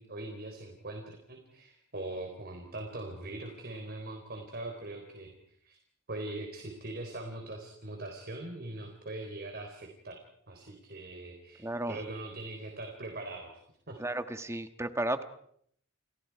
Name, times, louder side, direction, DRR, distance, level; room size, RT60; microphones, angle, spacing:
voice 1, 0.0-5.3 5.6-5.8 6.1-10.2 10.5-13.6 13.9-14.0, right 2 dB, 50° right, 3 dB, 3.9 m, -41 dB
voice 2, 11.6-12.0 14.0-15.2, right 1 dB, 15° right, 9 dB, 1.4 m, -33 dB
30.0 x 29.0 x 4.8 m, 0.67 s
head